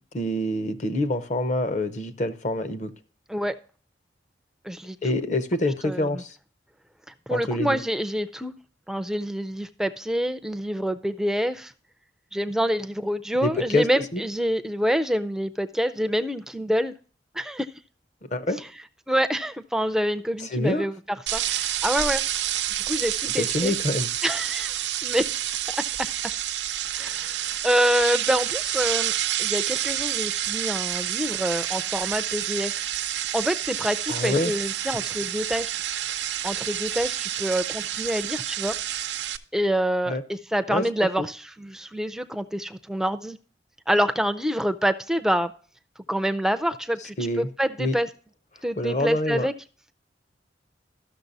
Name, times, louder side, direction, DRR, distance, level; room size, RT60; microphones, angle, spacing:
voice 1, 0.1-2.9 5.0-6.3 7.3-7.8 13.4-13.9 14.1-14.2 18.3-18.6 20.4-20.8 23.4-24.1 34.1-34.5 40.1-40.2 40.7-40.8 41.2-41.3 47.2-47.5 47.8-48.0 48.8-49.5, left 1 dB, 40° left, 11 dB, 0.7 m, -26 dB
voice 2, 4.6-5.0 5.8-6.2 7.3-8.5 8.9-11.7 12.3-16.9 17.4-17.7 19.1-21.0 21.3-22.2 22.9-23.7 24.2-25.3 25.7-25.8 26.9-29.1 29.4-32.8 33.3-35.7 36.4-38.7 39.5-43.4 43.9-45.5 46.1-48.1 48.6-49.5, equal, 5° right, 10 dB, 0.4 m, -26 dB
sound 1, 21.3-39.4, right 12 dB, 80° right, 0.5 m, -29 dB
13.0 x 6.5 x 2.6 m, 0.41 s
head